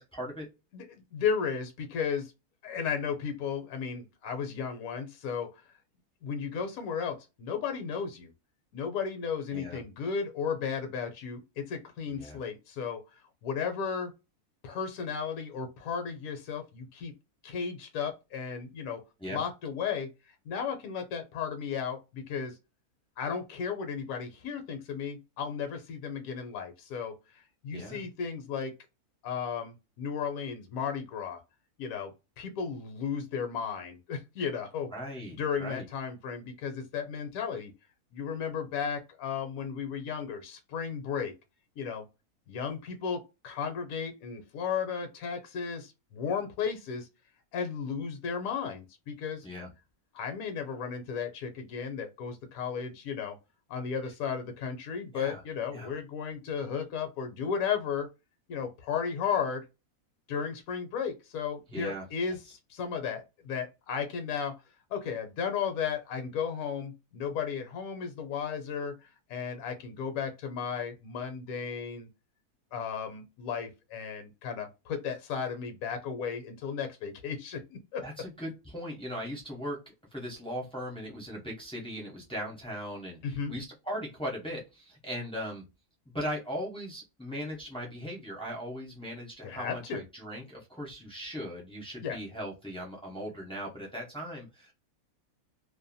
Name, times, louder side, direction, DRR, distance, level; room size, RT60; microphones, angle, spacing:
voice 1, 0.1-0.5 9.5-9.8 12.1-12.4 19.2-19.4 27.7-28.0 34.9-35.8 49.4-49.7 55.1-55.4 55.7-55.9 61.7-62.1 78.0-85.6 86.1-94.7, equal, 5° left, 0.5 m, -39 dB
voice 2, 0.7-2.3 2.6-5.6 6.2-8.3 8.7-13.0 13.4-14.1 14.6-17.1 17.4-19.0 19.3-20.1 20.4-22.5 23.2-27.1 27.6-28.7 29.2-31.4 31.8-32.1 32.4-34.9 35.3-37.7 38.1-41.3 41.8-42.0 42.5-47.1 47.5-49.4 50.1-53.4 53.7-58.1 58.5-59.6 60.3-64.5 64.9-72.1 72.7-78.0 83.2-83.5 89.4-90.0 92.0-92.2, left 6 dB, 70° left, 1.0 m, -34 dB
2.7 x 2.1 x 2.6 m
omnidirectional pair, 1.6 m